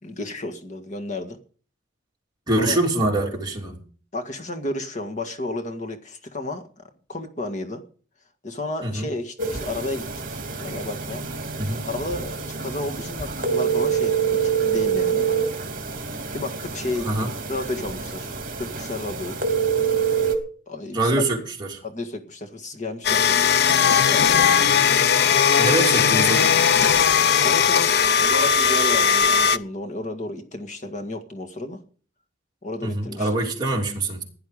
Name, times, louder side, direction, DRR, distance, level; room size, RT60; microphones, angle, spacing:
voice 1, 0.0-1.4 2.6-2.8 4.1-6.8 7.1-7.8 8.4-10.0 10.3-11.2 11.8-15.3 16.3-17.1 17.5-19.4 20.7-21.2 21.8-24.6 27.4-31.8 32.6-33.3, left 2 dB, 40° left, 1.8 m, -32 dB
voice 2, 2.5-3.8 8.8-9.1 11.6-11.8 17.0-17.3 20.9-21.8 25.6-26.5 32.8-34.2, right 2 dB, 20° right, 3.1 m, -24 dB
sound 1, 9.4-20.3, right 6 dB, 45° right, 3.0 m, -26 dB
sound 2, 23.0-29.6, left 7 dB, 55° left, 0.6 m, -18 dB
16.0 x 10.5 x 5.1 m
head